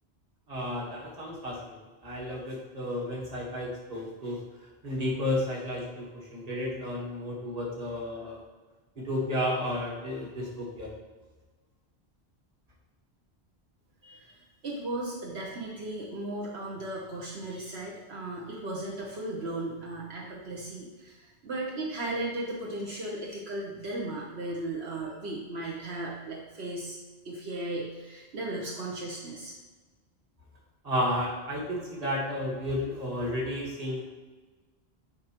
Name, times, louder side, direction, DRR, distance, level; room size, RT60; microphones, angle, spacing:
voice 1, 0.5-8.4 8.9-10.9 30.8-34.0, left 1 dB, 35° right, -4 dB, 1.5 m, -32 dB
voice 2, 14.0-27.0 27.2-29.5, right 2 dB, 75° right, -3 dB, 1.2 m, -36 dB
9.5 x 3.4 x 3.0 m, 1.3 s
omnidirectional pair, 1.1 m